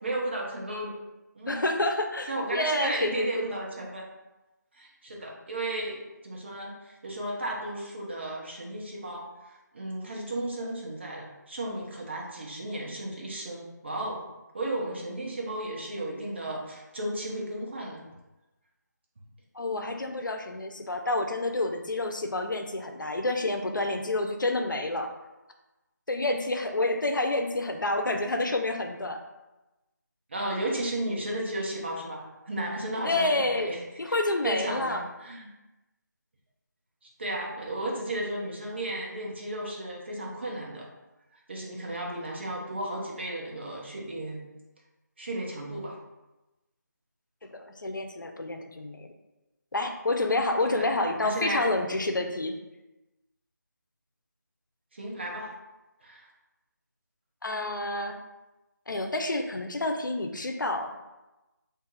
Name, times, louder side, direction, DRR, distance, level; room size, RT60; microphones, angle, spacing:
voice 1, 0.0-0.9 1.3-1.6 2.3-4.1 4.7-14.2 14.5-18.0 30.3-33.8 34.1-34.2 34.4-35.5 37.2-40.9 41.5-44.4 45.2-46.0 50.7-50.9 51.2-51.7 54.9-55.5 56.0-56.3, right 1 dB, 35° right, -2 dB, 0.6 m, -34 dB
voice 2, 1.5-3.6 19.6-25.1 26.1-29.2 33.0-33.7 34.0-35.0 47.5-49.1 49.7-52.5 57.4-58.2 58.9-61.0, left 2 dB, 85° left, 5 dB, 0.5 m, -29 dB
2.5 x 2.4 x 4.0 m, 1.0 s
figure-of-eight pair, 165°, 10 cm